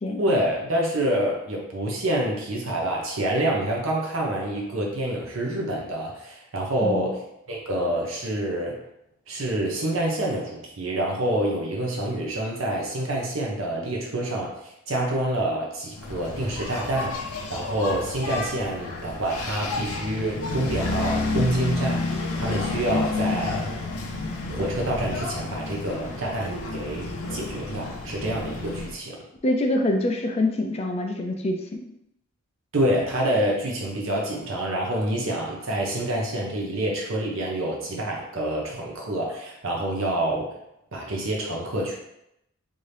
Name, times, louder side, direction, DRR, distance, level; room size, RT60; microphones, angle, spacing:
voice 1, 0.2-7.2 7.5-8.8 9.3-23.7 24.5-29.2 32.7-40.5 40.9-41.9, right 1 dB, 65° right, -1 dB, 0.7 m, -27 dB
voice 2, 6.8-7.1 29.4-31.9, left 1 dB, 30° left, 3 dB, 0.4 m, -25 dB
Engine, 16.0-29.0, left 3 dB, 90° left, 0.5 m, -30 dB
3.6 x 2.7 x 3.3 m, 0.81 s
head